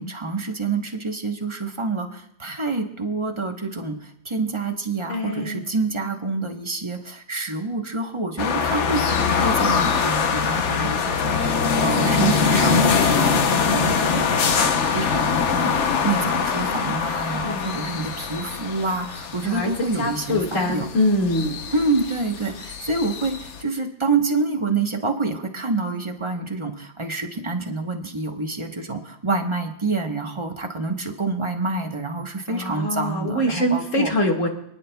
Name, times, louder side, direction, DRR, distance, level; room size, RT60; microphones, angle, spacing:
voice 1, 0.0-20.9 21.7-34.1, right 3 dB, 30° right, 3 dB, 0.5 m, -27 dB
voice 2, 5.1-5.7 17.4-17.7 19.4-19.7 20.0-21.6 32.5-34.5, left 1 dB, 40° left, 0 dB, 2.1 m, -24 dB
sound 1, 8.4-23.6, left 6 dB, 60° left, 0.7 m, -23 dB
27.5 x 10.5 x 2.3 m, 0.77 s
omnidirectional pair, 2.2 m